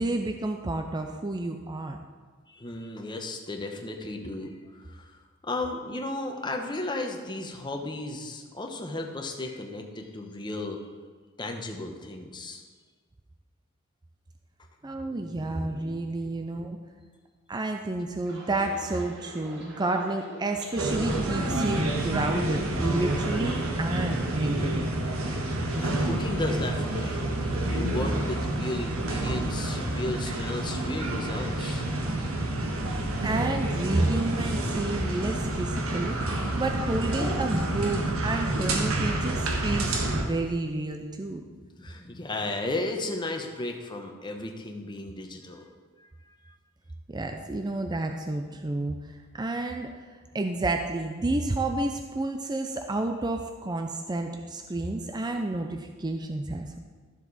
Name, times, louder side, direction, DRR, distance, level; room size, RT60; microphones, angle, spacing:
voice 1, 0.0-2.0 14.8-16.8 17.5-24.9 33.2-41.4 47.1-49.0 49.3-49.9 50.3-56.8, right 2 dB, 20° right, 5 dB, 0.5 m, -30 dB
voice 2, 2.5-10.8 11.4-12.6 16.2-16.9 25.7-31.9 36.3-36.4 38.3-38.4 41.5-45.7 46.0-46.1 46.4-46.5, left 2 dB, 20° left, 3 dB, 1.0 m, -35 dB
sound 1, 18.2-34.2 34.5-35.4 35.7-36.0, right 1 dB, 55° right, 2.2 m, -45 dB
sound 2, 20.8-40.2, right 1 dB, 80° right, 1.4 m, -28 dB
13.0 x 7.2 x 4.1 m, 1.5 s
head